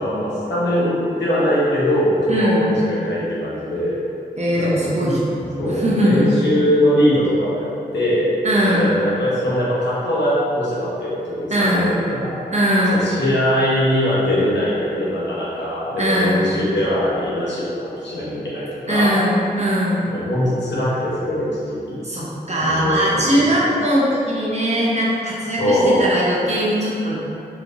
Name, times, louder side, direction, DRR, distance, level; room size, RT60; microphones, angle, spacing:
voice 1, 0.0-4.0 4.5-5.1 5.6-8.2 8.6-12.3 12.9-19.1 20.1-22.0 22.6-23.6 25.6-26.0, equal, 85° left, -8 dB, 0.9 m, -21 dB
voice 2, 2.3-2.7 4.4-6.4 8.4-8.9 11.5-12.0 12.5-13.2 16.0-16.5 18.9-20.1 22.0-27.2, equal, 40° right, -6 dB, 0.8 m, -20 dB
3.3 x 3.0 x 2.5 m, 2.6 s
cardioid pair, 45°, 18 cm